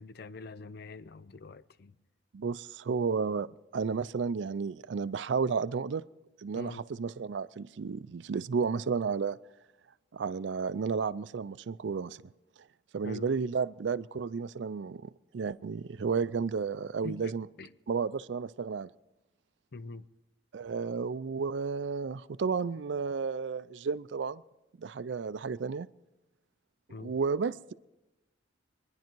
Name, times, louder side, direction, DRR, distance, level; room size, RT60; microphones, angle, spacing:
voice 1, 0.0-1.9 6.5-6.8 13.0-13.3 17.0-17.7 19.7-20.0 26.9-27.1, left 3 dB, 60° left, 0.5 m, -44 dB
voice 2, 2.3-3.5 3.7-6.0 6.4-9.4 10.1-12.2 12.9-17.5 17.9-18.9 20.5-24.4 24.8-25.9 27.0-27.7, right 5 dB, 75° right, 0.4 m, -32 dB
25.0 x 10.5 x 4.6 m
head